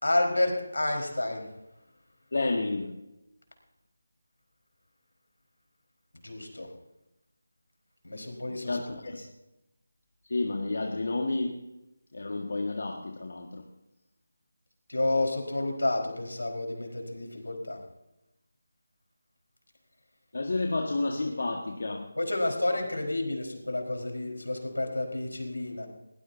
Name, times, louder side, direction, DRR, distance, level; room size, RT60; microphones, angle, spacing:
voice 1, 0.0-1.5 6.2-6.7 8.0-8.8 9.1-9.2 14.9-17.8 22.2-25.9, left 2 dB, 80° left, 2 dB, 4.4 m, -30 dB
voice 2, 2.3-2.9 8.6-9.1 10.3-11.6 12.1-13.6 20.3-22.1, left 2 dB, 60° left, 2 dB, 1.7 m, -30 dB
21.0 x 18.5 x 2.7 m, 0.95 s
figure-of-eight pair, 160°, 0 cm